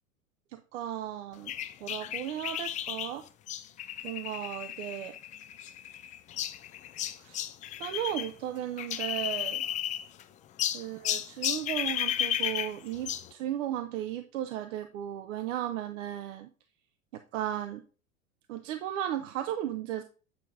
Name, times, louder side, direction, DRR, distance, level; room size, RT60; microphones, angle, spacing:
voice 1, 0.5-1.5 1.8-3.2 4.0-5.2 7.2-7.4 7.8-9.6 10.7-16.5 17.1-17.8 18.5-20.0, right 11 dB, 60° right, 8 dB, 0.8 m, -35 dB
sound 1, 1.5-8.3 8.6-10.2 10.6-13.3, left 11 dB, 20° left, 0.4 m, -34 dB
8.4 x 5.2 x 3.6 m, 0.37 s
hypercardioid pair, 90°, 42 cm